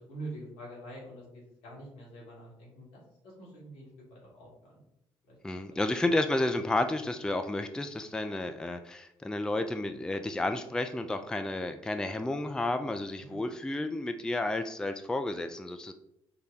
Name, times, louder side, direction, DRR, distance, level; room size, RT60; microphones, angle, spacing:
voice 1, 0.1-4.8 5.3-5.4 13.2-13.4, right 1 dB, 80° left, -4 dB, 1.2 m, -46 dB
voice 2, 5.4-15.9, left 2 dB, 5° left, 8 dB, 0.3 m, -31 dB
3.9 x 2.2 x 3.4 m, 0.81 s
hypercardioid pair, 45°, 13 cm